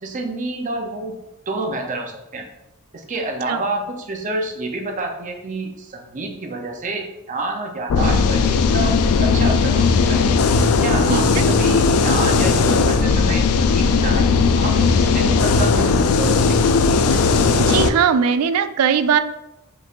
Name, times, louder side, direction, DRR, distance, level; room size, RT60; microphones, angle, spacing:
voice 1, 0.0-1.2 1.5-2.4 2.9-10.2 10.8-16.6, right 2 dB, 35° right, 3 dB, 0.6 m, -28 dB
sound 1, 7.9-17.9, left 4 dB, 80° left, 0.3 m, -17 dB
voice 2, 11.1-11.4 17.1-17.2 17.6-19.2, right 7 dB, 80° right, 11 dB, 0.3 m, -19 dB
5.2 x 3.1 x 2.5 m, 0.93 s
head